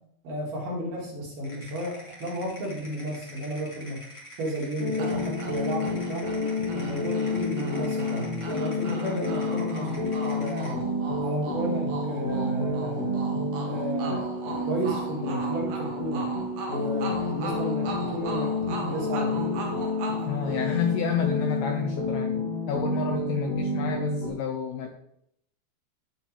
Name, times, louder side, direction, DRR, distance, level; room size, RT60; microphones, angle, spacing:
voice 1, 0.2-4.0 4.4-6.3 6.7-10.7 11.2-13.2 13.6-16.2 16.7-19.7, equal, 55° right, -3 dB, 3.0 m, -33 dB
sound 1, 1.4-10.8, equal, 25° left, 0.6 m, -47 dB
sound 2, 4.8-24.3, left 2 dB, 60° left, 1.7 m, -30 dB
sound 3, 5.0-21.2, right 3 dB, 85° right, 1.7 m, -39 dB
voice 2, 20.3-22.4 22.7-24.9, left 6 dB, 80° left, 3 dB, 2.4 m, -29 dB
15.0 x 5.0 x 3.3 m, 0.73 s
omnidirectional pair, 5.4 m